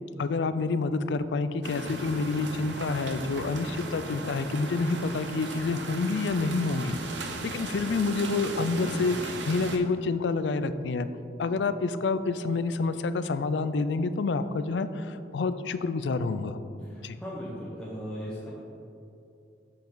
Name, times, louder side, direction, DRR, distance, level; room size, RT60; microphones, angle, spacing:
voice 1, 0.2-7.0 7.4-11.1 11.4-16.6 17.0-17.2, left 3 dB, 80° left, 12 dB, 0.4 m, -28 dB
sound 1, 1.6-9.8, right 2 dB, 90° right, 0.8 m, -37 dB
voice 2, 16.8-18.5, equal, 5° left, -9 dB, 1.1 m, -38 dB
8.2 x 6.7 x 3.9 m, 2.7 s
head